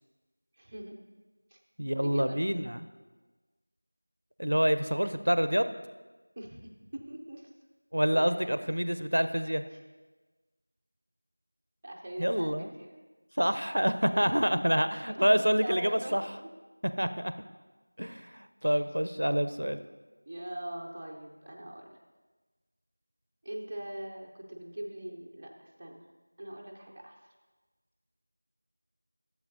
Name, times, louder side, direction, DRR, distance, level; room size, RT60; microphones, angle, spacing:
voice 1, 0.6-1.0 1.5-1.6 2.0-2.7 6.4-7.5 8.1-8.7 9.7-9.8 11.8-13.0 14.1-14.3 15.2-16.2 18.6-18.8 20.3-22.0 23.4-26.0 26.4-27.2, right 1 dB, 15° right, -1 dB, 0.4 m, -42 dB
voice 2, 1.8-2.8 4.4-5.7 7.9-9.6 12.2-12.7 13.4-16.2 17.0-17.3 18.0-19.8, equal, 75° right, 11 dB, 0.5 m, -27 dB
13.0 x 7.1 x 2.6 m, 1.3 s
figure-of-eight pair, 175°, 0 cm